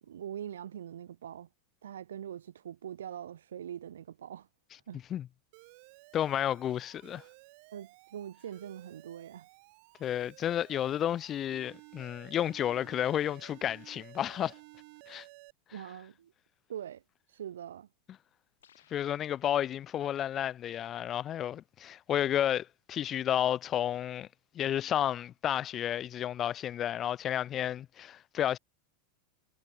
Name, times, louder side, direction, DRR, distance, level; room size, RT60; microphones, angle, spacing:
voice 1, 0.0-1.5 1.8-4.5 4.9-5.0 7.7-9.5 15.7-16.3 16.7-17.0 17.3-17.9, right 10 dB, 85° right, 0.3 m, -43 dB
Alarm, 5.5-15.5, right 32 dB, 60° right, 1.0 m, -55 dB
voice 2, 6.1-7.2 10.0-14.5 15.1-15.3 18.9-24.3 24.5-28.6, left 11 dB, 35° left, 0.3 m, -31 dB
sound 1, 18.6-20.2, left 9 dB, 90° left, 2.2 m, -67 dB
hypercardioid pair, 110°, 0 cm